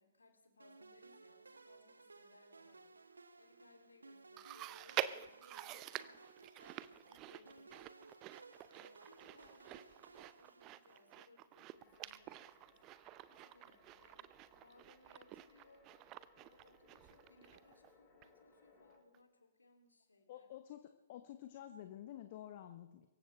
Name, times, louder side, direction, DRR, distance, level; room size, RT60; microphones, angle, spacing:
voice 1, 0.0-3.0 3.4-8.2 8.6-12.8 13.2-15.9 16.3-20.5, left 3 dB, 75° left, 4 dB, 3.0 m, -67 dB
sound 1, 0.6-11.3, right 3 dB, 75° right, 0.9 m, -60 dB
Chewing mastication, 4.4-17.9 18.2-18.3 19.1-19.2, right 13 dB, 25° right, 0.6 m, -48 dB
sound 2, 11.7-19.0, left 3 dB, 15° left, 5.0 m, -69 dB
voice 2, 20.3-20.8 21.1-23.1, left 11 dB, 40° left, 8 dB, 1.0 m, -50 dB
24.5 x 15.0 x 3.3 m, 1.1 s
figure-of-eight pair, 120°, 0 cm